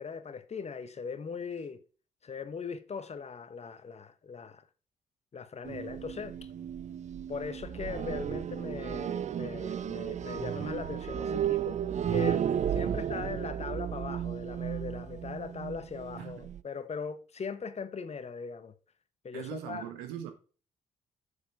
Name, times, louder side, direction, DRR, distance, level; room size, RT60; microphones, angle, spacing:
voice 1, 0.0-1.8 2.2-4.6 5.3-6.4 7.3-11.8 12.1-12.4 12.7-18.7 19.2-19.8, left 5 dB, 40° left, 1.3 m, -39 dB
sound 1, 5.6-16.6, right 9 dB, 45° right, 0.5 m, -34 dB
voice 2, 12.5-13.1 16.2-16.6 19.3-20.3, right 10 dB, 80° right, 1.4 m, -42 dB
7.0 x 7.0 x 4.8 m
hypercardioid pair, 45°, 16 cm